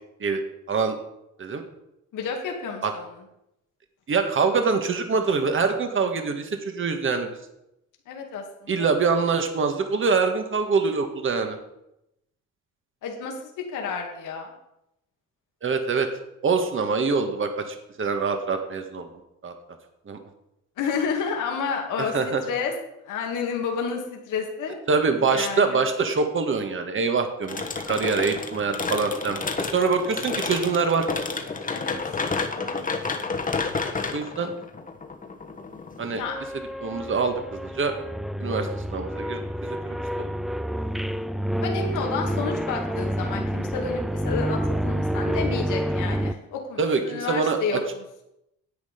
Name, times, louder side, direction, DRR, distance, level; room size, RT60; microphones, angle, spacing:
voice 1, 2.1-3.1 8.1-8.9 13.0-14.5 20.8-22.2 22.4-22.7 23.1-24.8 25.2-25.8 31.7-32.0 32.5-32.9 36.2-36.4 41.6-47.8, left 5 dB, 85° left, 1 dB, 2.0 m, -30 dB
voice 2, 4.1-7.3 8.7-11.6 15.6-16.1 16.4-19.1 19.4-19.5 20.1-20.2 22.0-22.4 24.9-31.1 34.1-34.5 36.0-36.2 36.8-37.9 38.4-40.3 46.8-47.8, right 4 dB, 40° right, 6 dB, 1.6 m, -25 dB
sound 1, 27.5-36.2, left 4 dB, 25° left, 1.3 m, -30 dB
sound 2, 36.2-46.3, equal, ahead, 0.4 m, -28 dB
10.5 x 8.4 x 5.2 m, 0.84 s
cardioid pair, 90°, 30 cm